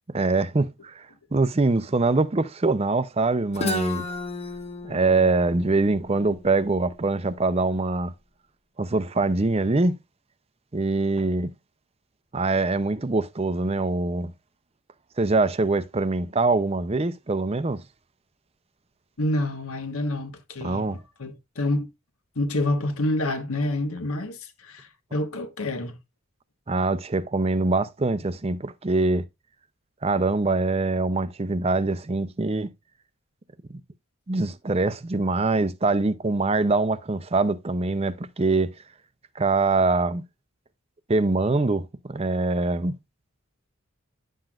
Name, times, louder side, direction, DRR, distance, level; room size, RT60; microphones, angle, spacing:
voice 1, 0.1-1.1 1.3-4.1 4.8-8.1 8.8-10.0 10.7-11.5 12.3-14.3 15.2-17.8 20.6-21.0 26.7-29.2 30.0-32.7 33.7-33.8 34.3-38.7 39.4-40.2 41.1-42.9, right 3 dB, 30° right, 0.5 m, -23 dB
Guitar, 3.5-7.3, left 2 dB, 30° left, 1.1 m, -33 dB
voice 2, 19.2-21.9 22.3-26.0, left 1 dB, 80° left, 1.4 m, -28 dB
10.0 x 7.7 x 2.4 m
head